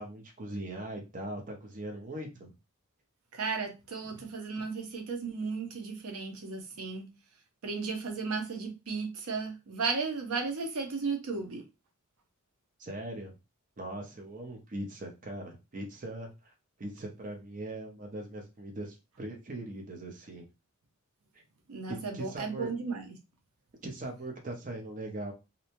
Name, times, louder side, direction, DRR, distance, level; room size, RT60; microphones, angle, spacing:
voice 1, 0.0-2.5 12.8-13.3 13.8-16.5 16.8-20.5 21.9-22.7 23.8-25.3, right 1 dB, 35° right, 0.6 m, -40 dB
voice 2, 3.3-7.1 7.6-11.6 21.7-23.1, right 4 dB, 75° right, 0.7 m, -35 dB
2.7 x 2.1 x 2.8 m
head